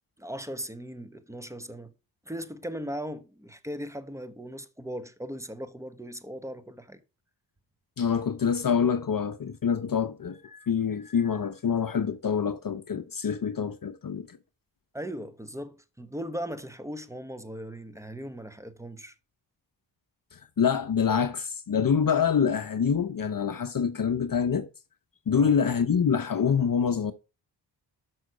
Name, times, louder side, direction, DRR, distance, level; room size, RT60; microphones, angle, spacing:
voice 1, 0.2-1.9 2.2-7.0 14.9-19.1 25.3-25.5, equal, 5° right, 1.3 m, -38 dB
voice 2, 8.0-14.4 20.3-24.7 25.3-27.1, left 7 dB, 45° left, 0.8 m, -26 dB
6.3 x 6.3 x 5.2 m
supercardioid pair, 40°, 48 cm